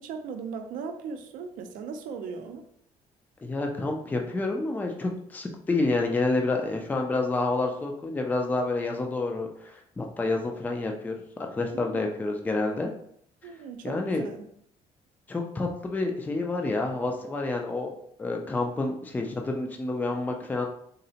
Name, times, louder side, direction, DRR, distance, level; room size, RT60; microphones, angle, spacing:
voice 1, 0.0-2.6 11.7-12.0 13.4-14.5, right 5 dB, 85° right, 6 dB, 0.5 m, -38 dB
voice 2, 3.4-11.1 11.4-12.9 13.8-14.2 15.3-17.9 18.2-20.7, left 2 dB, 10° left, 3 dB, 0.3 m, -28 dB
3.7 x 2.1 x 2.7 m, 0.67 s
cardioid pair, 135°, 14 cm